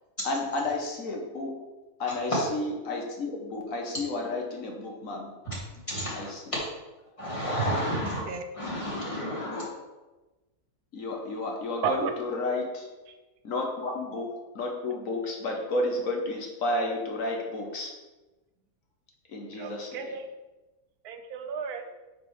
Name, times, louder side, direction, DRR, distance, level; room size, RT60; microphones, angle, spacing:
voice 1, 0.2-1.6 2.0-5.3 6.1-6.4 7.8-7.9 9.4-9.6 10.9-12.9 13.4-14.3 14.5-17.9 19.3-19.9, left 2 dB, 65° left, 0 dB, 1.4 m, -31 dB
voice 2, 5.9-6.6 7.2-8.2 8.5-9.7, equal, 20° left, -6 dB, 2.3 m, -30 dB
voice 3, 11.8-12.1 19.6-20.3 21.0-21.9, right 6 dB, 85° right, 6 dB, 1.2 m, -32 dB
8.7 x 4.9 x 3.2 m, 1.1 s
omnidirectional pair, 1.6 m